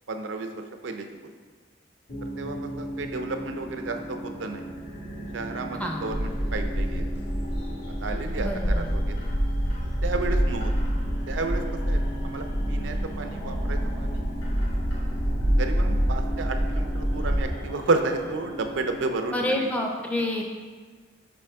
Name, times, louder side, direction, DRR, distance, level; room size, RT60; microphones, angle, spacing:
voice 1, 0.1-1.1 2.4-4.6 5.3-7.0 8.0-9.3 9.8-10.7 11.3-14.3 15.6-19.7, right 3 dB, 80° right, 6 dB, 0.5 m, -32 dB
sound 1, 2.1-19.6, equal, 80° left, 1.5 m, -38 dB
Bird, 6.1-17.4, equal, 60° left, 1.9 m, -27 dB
voice 2, 8.4-8.9 19.3-20.4, left 1 dB, 5° left, 1 dB, 0.4 m, -28 dB
6.1 x 5.2 x 3.4 m, 1.5 s
head